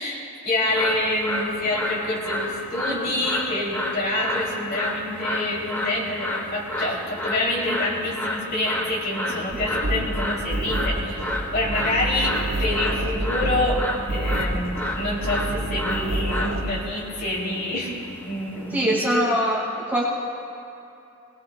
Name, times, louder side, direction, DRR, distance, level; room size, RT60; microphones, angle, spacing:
voice 1, 0.0-18.0 18.2-19.3, left 1 dB, 50° left, -4 dB, 3.3 m, -27 dB
sound 1, 0.7-18.9, left 1 dB, 10° left, 1.2 m, -31 dB
voice 2, 9.3-9.7 18.7-20.0, equal, 10° right, -5 dB, 2.3 m, -24 dB
sound 2, 9.5-16.6, right 1 dB, 65° right, 1.8 m, -28 dB
21.5 x 19.5 x 2.4 m, 2.7 s
head